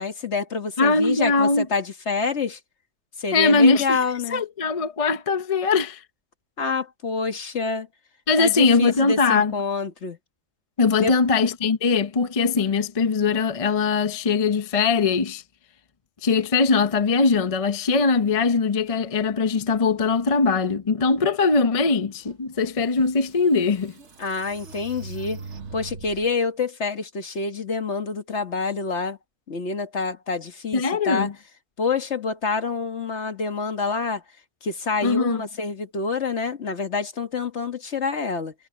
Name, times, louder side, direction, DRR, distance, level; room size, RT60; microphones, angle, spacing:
voice 1, 0.0-2.6 3.2-4.4 6.6-7.9 8.4-10.2 11.0-11.2 24.2-25.4 25.7-29.2 29.5-31.3 31.8-34.2 34.6-38.5, left 4 dB, 60° left, 1.9 m, -27 dB
voice 2, 0.8-1.7 3.3-4.0 4.3-6.0 8.3-9.5 10.8-15.4 16.2-23.9 30.7-31.3 35.0-35.4, left 4 dB, 30° left, 0.8 m, -21 dB
sound 1, 22.5-22.6 23.2-26.3, right 4 dB, 60° right, 1.5 m, -40 dB
omnidirectional pair, 1.3 m